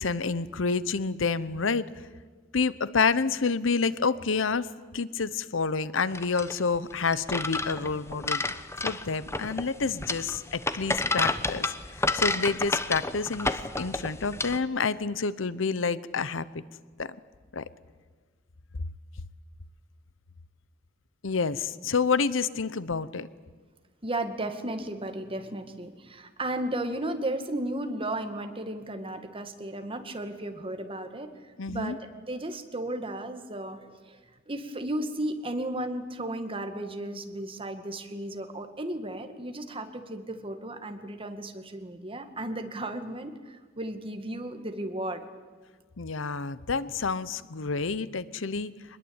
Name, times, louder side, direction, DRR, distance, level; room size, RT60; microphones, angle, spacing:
voice 1, 0.0-1.8 2.5-4.7 4.9-8.5 8.8-16.5 17.0-17.2 17.5-17.6 21.2-23.3 31.6-32.0 46.0-48.7, left 4 dB, 80° left, 17 dB, 0.9 m, -28 dB
sound 1, 6.1-14.6, left 3 dB, 15° left, 1.0 m, -30 dB
voice 2, 24.0-34.2 34.5-45.2, right 1 dB, 30° right, 7 dB, 2.1 m, -34 dB
24.5 x 20.5 x 8.9 m, 1.5 s
head